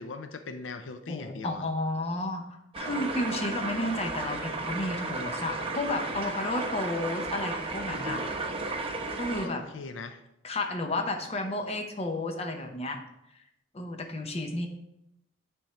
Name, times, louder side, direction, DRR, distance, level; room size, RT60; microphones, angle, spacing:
voice 1, 0.0-1.6 9.4-10.2, left 4 dB, 90° left, 8 dB, 0.5 m, -40 dB
voice 2, 1.1-2.4 2.8-8.2 9.2-9.6 10.4-13.0 13.7-14.7, left 2 dB, 35° left, 4 dB, 0.8 m, -32 dB
Stream going through pipe, 2.7-9.5, right 3 dB, 30° right, 0.8 m, -34 dB
8.9 x 3.6 x 4.3 m, 0.85 s
head